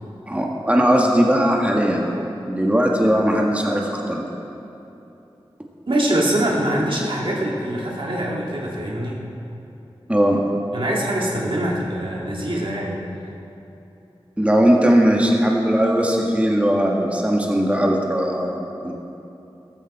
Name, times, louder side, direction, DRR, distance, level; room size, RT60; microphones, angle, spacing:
voice 1, 0.3-2.1 2.5-4.2 10.1-10.4 14.4-19.0, equal, 15° right, -1 dB, 1.8 m, -19 dB
voice 2, 5.9-9.2 10.7-13.0, right 1 dB, 60° right, -3 dB, 2.2 m, -23 dB
14.0 x 14.0 x 4.3 m, 2.9 s
cardioid pair, 45°, 10 cm